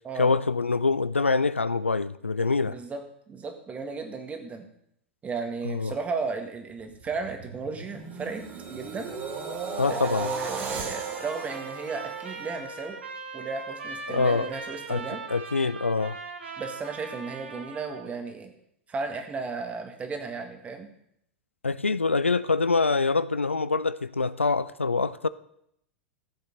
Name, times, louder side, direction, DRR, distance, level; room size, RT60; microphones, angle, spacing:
voice 1, 0.2-2.8 5.6-5.9 9.8-10.3 14.1-14.5 14.9-16.2 21.6-25.3, left 4 dB, 85° left, 0.4 m, -25 dB
voice 2, 2.7-3.0 3.3-4.7 5.2-8.4 8.7-9.1 9.9-13.0 13.3-15.2 16.6-18.5 18.9-20.9, right 4 dB, 20° right, 1.7 m, -34 dB
sound 1, 6.8-13.1 13.5-13.8, right 5 dB, 35° right, 2.8 m, -37 dB
Trumpet, 10.1-18.1, right 4 dB, 70° right, 1.6 m, -40 dB
14.5 x 7.9 x 3.9 m
figure-of-eight pair, 90°, 6 cm